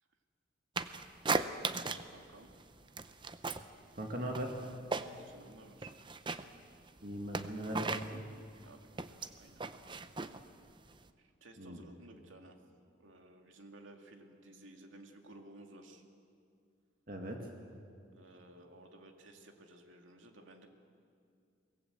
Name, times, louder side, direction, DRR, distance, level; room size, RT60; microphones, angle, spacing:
sound 1, 0.8-2.2 2.4-3.7 4.0-5.4 5.7-11.1, right 4 dB, 25° right, 0.6 m, -37 dB
voice 1, 2.1-2.5 5.1-5.9 8.6-9.6 11.2-12.6 13.0-16.0 18.1-20.7, right 2 dB, 90° right, 3 dB, 2.4 m, -56 dB
voice 2, 4.0-4.5 7.0-8.2 11.6-11.8 17.1-17.4, right 1 dB, 45° right, 1 dB, 2.1 m, -39 dB
23.0 x 19.0 x 8.1 m, 2.3 s
head